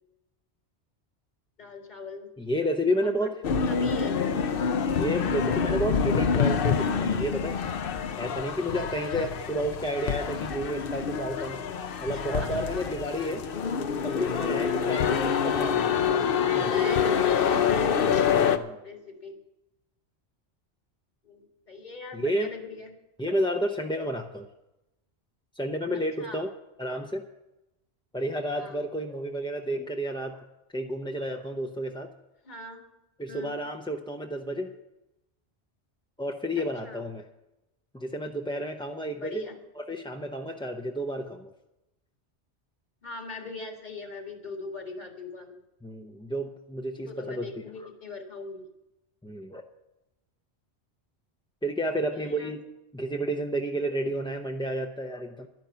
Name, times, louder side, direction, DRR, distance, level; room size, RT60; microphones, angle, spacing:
voice 1, 1.6-2.3 3.0-4.3 9.1-9.3 11.9-12.9 13.2-13.4 15.0-15.3 16.5-18.1 18.8-19.4 21.2-22.9 26.2-26.5 28.5-28.8 32.4-32.8 33.3-33.6 36.6-37.0 39.1-39.6 43.0-45.6 47.1-48.7 52.1-52.6, left 3 dB, 40° left, 3 dB, 2.0 m, -41 dB
voice 2, 2.4-3.3 4.9-7.6 8.2-11.6 12.0-13.4 14.0-15.1 15.4-16.8 18.5-18.8 22.1-22.5 23.2-24.5 25.6-26.5 26.8-27.2 28.1-30.4 30.7-32.1 33.2-34.7 36.2-37.2 37.9-39.4 39.8-41.5 45.8-47.5 47.8-47.9 49.2-49.6 51.6-52.6 52.9-55.5, equal, 5° left, 2 dB, 0.5 m, -31 dB
sound 1, 3.4-18.6, left 7 dB, 60° left, 0.9 m, -26 dB
12.0 x 10.5 x 7.0 m, 0.94 s
omnidirectional pair, 1.1 m